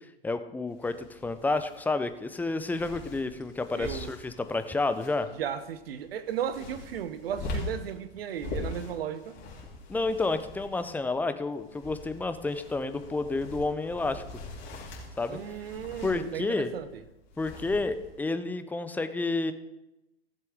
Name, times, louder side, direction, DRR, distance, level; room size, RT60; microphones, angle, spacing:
voice 1, 0.2-5.3 9.9-14.2 15.2-15.4 16.0-16.7 17.4-19.5, left 3 dB, 5° left, 0.6 m, -30 dB
sound 1, 0.7-18.2, left 2 dB, 35° left, 3.0 m, -43 dB
voice 2, 3.7-4.1 5.3-9.4 15.3-16.9, right 9 dB, 70° right, 0.9 m, -35 dB
15.5 x 7.6 x 3.6 m
hypercardioid pair, 100°, 31 cm